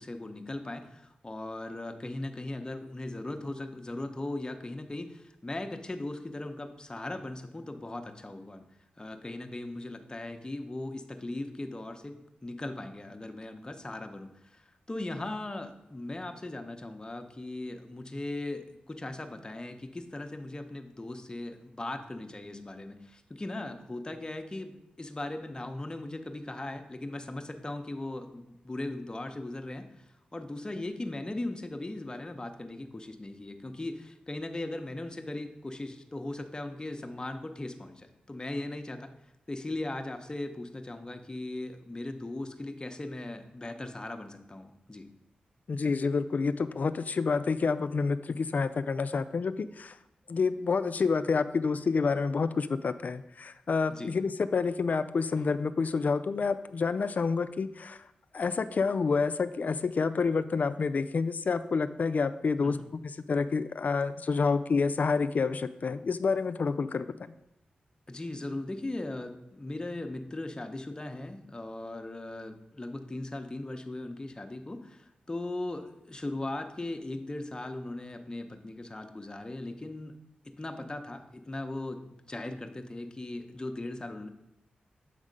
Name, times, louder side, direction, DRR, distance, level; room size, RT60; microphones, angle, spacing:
voice 1, 0.0-8.6 9.0-30.0 30.3-39.1 39.5-45.1 53.9-54.1 62.6-62.9 68.1-80.1 80.4-84.3, left 2 dB, 25° left, 6 dB, 0.8 m, -38 dB
voice 2, 45.7-49.9 50.3-58.0 58.3-62.8 63.0-67.3, left 4 dB, 55° left, 12 dB, 0.3 m, -28 dB
7.4 x 3.6 x 5.2 m, 0.83 s
cardioid pair, 50°, 3 cm